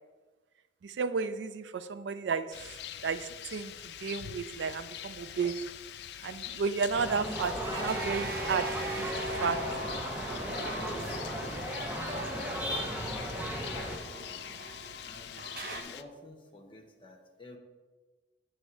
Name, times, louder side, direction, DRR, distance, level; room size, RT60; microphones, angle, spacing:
voice 1, 0.8-5.6 6.2-9.6 12.5-12.6, right 5 dB, 75° right, 12 dB, 0.4 m, -33 dB
Rain, 2.5-16.0, left 11 dB, 60° left, 0.3 m, -44 dB
sound 1, 6.9-14.0, equal, 10° right, 0.6 m, -36 dB
sound 2, 7.1-15.8, right 1 dB, 50° right, 0.8 m, -40 dB
voice 2, 13.5-14.4 15.0-15.4 15.7-17.6, left 2 dB, 30° left, 3 dB, 0.8 m, -53 dB
8.0 x 3.2 x 6.1 m, 1.3 s
head